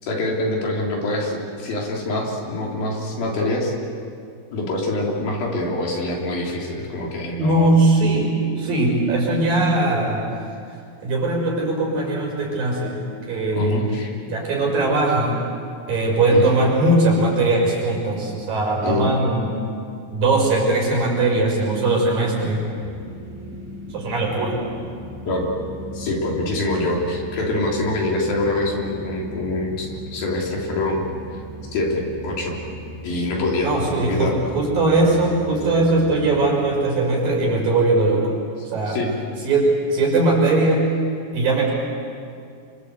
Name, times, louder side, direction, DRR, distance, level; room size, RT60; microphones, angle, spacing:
voice 1, 0.0-3.7 4.5-7.7 13.5-14.2 16.3-16.4 18.8-19.1 25.3-25.5 25.9-31.0 31.7-32.6 33.0-34.3 38.9-39.1, left 2 dB, 75° left, -1 dB, 5.3 m, -25 dB
voice 2, 7.4-10.4 11.0-13.0 13.3-13.8 14.3-15.4 15.9-19.5 20.1-22.7 23.9-24.6 33.6-38.4 38.7-39.0 39.4-40.9 41.3-41.7, right 2 dB, 70° right, -2 dB, 7.1 m, -20 dB
sound 1, 22.8-36.5, right 1 dB, 5° right, 7.9 m, -37 dB
27.5 x 25.0 x 8.1 m, 2.4 s
omnidirectional pair, 4.2 m